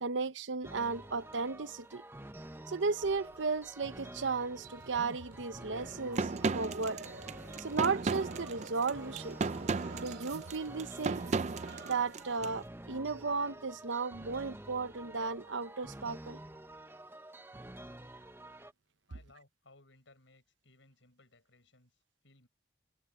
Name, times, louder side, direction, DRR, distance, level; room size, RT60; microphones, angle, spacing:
voice 1, 0.0-2.0 2.7-7.0 7.6-9.4 9.9-11.2 11.8-16.4, right 4 dB, 80° right, 0.8 m, -35 dB
sound 1, 0.6-18.7, right 1 dB, 10° right, 0.9 m, -49 dB
sound 2, 3.0-12.5, right 2 dB, 60° right, 4.3 m, -52 dB
sound 3, 6.1-12.5, right 4 dB, 35° right, 0.4 m, -35 dB
voice 2, 19.1-22.5, left 2 dB, 85° left, 6.3 m, -63 dB
head